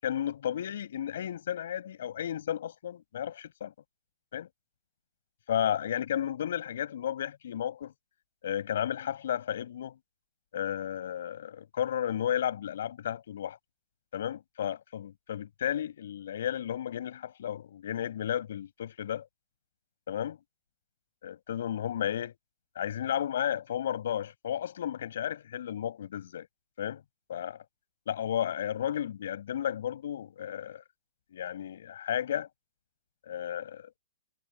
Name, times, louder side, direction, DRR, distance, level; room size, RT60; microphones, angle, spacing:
voice 1, 0.0-3.7 4.3-4.5 5.5-7.9 8.4-9.9 10.5-13.6 14.1-19.3 20.1-20.4 21.2-22.3 22.8-26.5 26.8-27.0 27.3-27.6 28.1-30.8 31.3-32.5 33.3-33.9, left 10 dB, 60° left, 7.2 m, -33 dB
hypercardioid pair, 175°, 0 cm